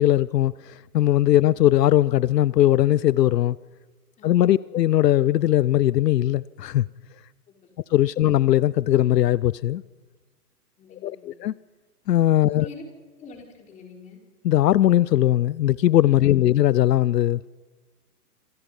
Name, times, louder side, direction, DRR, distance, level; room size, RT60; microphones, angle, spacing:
voice 1, 0.0-3.6 4.2-6.9 7.9-9.8 11.0-11.5 12.1-12.7 14.4-17.5, left 13 dB, 80° left, 0.7 m, -19 dB
voice 2, 4.2-4.6 7.5-7.7 8.2-8.3 10.8-11.4 12.5-12.8 13.2-14.2 16.2-16.6, left 4 dB, 15° left, 3.9 m, -46 dB
27.0 x 26.5 x 5.5 m
hypercardioid pair, 160°, 48 cm